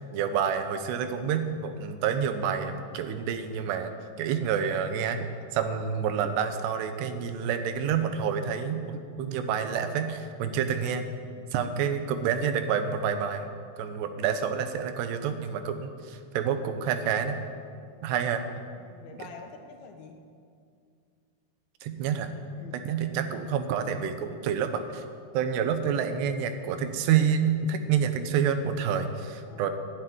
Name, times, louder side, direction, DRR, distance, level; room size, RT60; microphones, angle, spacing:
voice 1, 0.0-3.9 4.2-11.0 11.5-13.5 13.8-17.4 18.0-18.4 19.1-19.3 21.8-22.3 22.7-25.0 25.3-29.7, right 7 dB, 85° right, 8 dB, 3.0 m, -28 dB
voice 2, 18.8-20.2 22.6-22.8 29.5-29.7, left 5 dB, 70° left, 4 dB, 2.9 m, -47 dB
11.5 x 9.8 x 9.3 m, 2.3 s
omnidirectional pair, 4.8 m